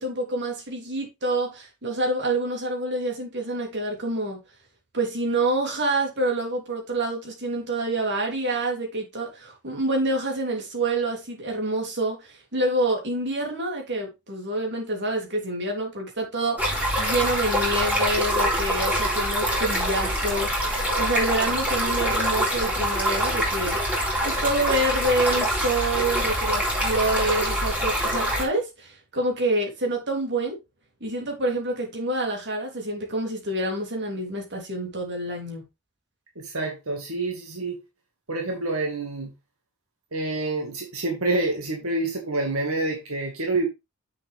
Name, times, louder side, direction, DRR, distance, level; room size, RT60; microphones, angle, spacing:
voice 1, 0.0-4.4 4.9-20.5 21.0-23.8 24.2-30.6 31.0-35.6, right 2 dB, 55° right, 3.5 m, -27 dB
Stream, 16.6-28.5, equal, 5° right, 3.5 m, -25 dB
voice 2, 36.4-37.8 38.3-39.3 40.1-43.7, right 2 dB, 85° right, 2.1 m, -27 dB
7.7 x 6.7 x 3.6 m
head